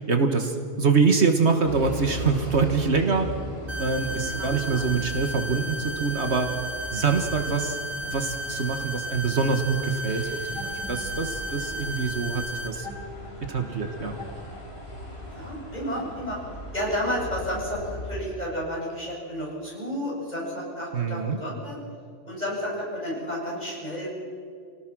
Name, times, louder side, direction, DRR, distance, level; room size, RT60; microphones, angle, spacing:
voice 1, 0.1-3.3 3.8-6.5 6.9-7.8 8.1-12.9 13.5-14.2 20.9-21.4, right 4 dB, 65° right, 5 dB, 1.8 m, -25 dB
sound 1, 1.6-18.3, equal, 55° left, 4.1 m, -39 dB
sound 2, 3.7-12.7, equal, 35° right, 2.2 m, -34 dB
voice 2, 4.3-4.8 15.2-16.4 16.7-21.8 22.2-24.1, equal, 35° left, -4 dB, 7.9 m, -31 dB
sound 3, 10.5-16.7, left 1 dB, 80° right, 6.3 m, -43 dB
28.0 x 18.0 x 6.2 m, 2.2 s
omnidirectional pair, 1.2 m